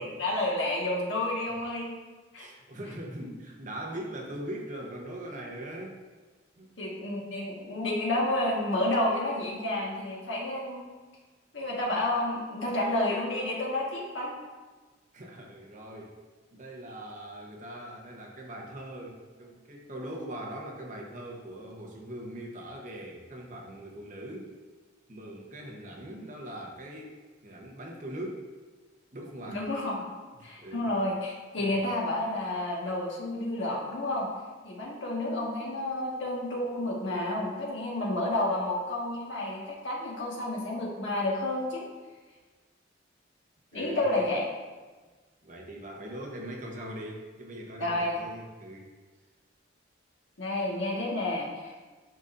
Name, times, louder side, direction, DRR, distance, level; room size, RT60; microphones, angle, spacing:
voice 1, 0.0-1.9 2.3-2.5 6.8-11.0 11.5-14.3 29.5-30.1 30.4-34.3 34.6-41.8 43.7-44.4 47.8-48.1 50.4-51.8, left 1 dB, 80° left, -3 dB, 1.6 m, -30 dB
voice 2, 2.4-6.0 6.6-6.7 15.1-16.2 16.5-24.5 25.1-27.1 27.4-28.5 29.1-29.6 30.4-30.9 31.6-31.8 43.7-44.3 45.4-48.9, right 1 dB, 40° right, -1 dB, 1.0 m, -41 dB
10.5 x 4.0 x 2.6 m, 1.3 s
head